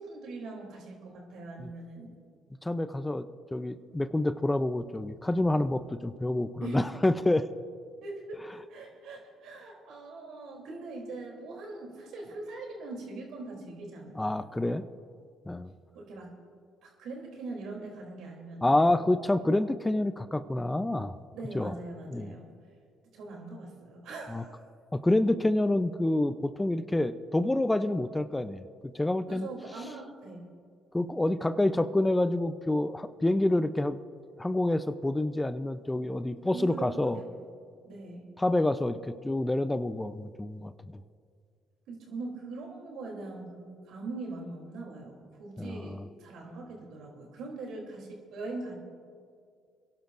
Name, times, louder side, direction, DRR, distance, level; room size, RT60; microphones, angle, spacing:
voice 1, 0.0-2.1 6.6-6.9 8.0-14.4 15.9-16.3 16.8-19.0 21.3-22.5 23.1-24.5 29.3-30.4 36.5-37.5 37.8-38.3 41.9-48.7, right 3 dB, 75° right, 1 dB, 3.2 m, -42 dB
voice 2, 2.6-7.5 14.1-14.8 15.5-15.7 18.6-21.1 21.5-21.7 22.1-22.3 24.3-24.4 24.9-29.5 30.9-34.0 34.4-37.2 38.4-40.7 45.6-46.1, left 1 dB, 15° left, 12 dB, 0.6 m, -28 dB
28.0 x 11.5 x 2.6 m, 2.1 s
supercardioid pair, 65°, 0 cm